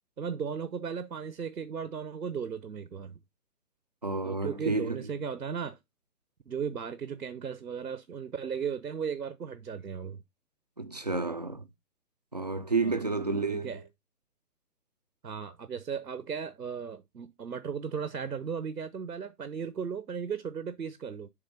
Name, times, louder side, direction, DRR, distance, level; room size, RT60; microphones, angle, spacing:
voice 1, 0.2-3.2 4.2-5.8 6.5-10.2 12.8-13.0 13.5-13.8 15.2-21.3, right 6 dB, 75° right, 0.9 m, -36 dB
voice 2, 4.0-5.1 10.8-11.6 12.3-13.8, right 3 dB, 30° right, 0.4 m, -30 dB
7.1 x 3.6 x 5.4 m
figure-of-eight pair, 130°, 48 cm